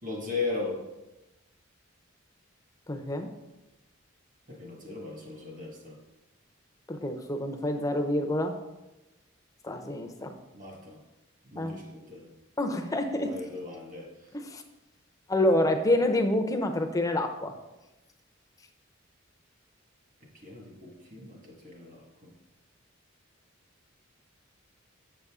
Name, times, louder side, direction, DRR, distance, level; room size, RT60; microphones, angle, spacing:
voice 1, 0.0-0.8 4.5-5.9 9.8-9.9 10.5-11.0 11.5-12.3 13.2-14.1 20.4-22.3, left 3 dB, 40° right, 0 dB, 1.5 m, -37 dB
voice 2, 2.9-3.3 6.9-8.6 9.6-10.3 11.5-11.8 12.6-13.4 14.3-14.6 15.3-17.5, left 1 dB, 15° left, 5 dB, 0.6 m, -27 dB
7.3 x 6.7 x 3.6 m, 1.0 s
head